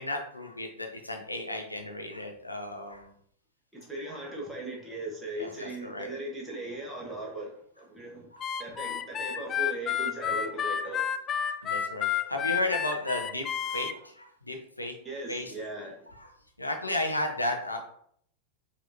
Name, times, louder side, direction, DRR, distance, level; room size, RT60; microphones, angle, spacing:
voice 1, 0.0-3.1 4.0-4.1 5.4-6.1 8.3-8.9 9.2-9.3 11.4-14.9 15.3-15.5 16.1-16.3 16.6-17.9, left 1 dB, 85° left, 3 dB, 0.5 m, -34 dB
voice 2, 3.7-8.3 8.6-11.0 15.0-16.1, right 1 dB, 5° right, -3 dB, 1.2 m, -38 dB
Harmonica, 8.4-13.9, left 9 dB, 25° left, 0.3 m, -30 dB
4.9 x 2.8 x 2.7 m, 0.66 s
figure-of-eight pair, 90°, 0 cm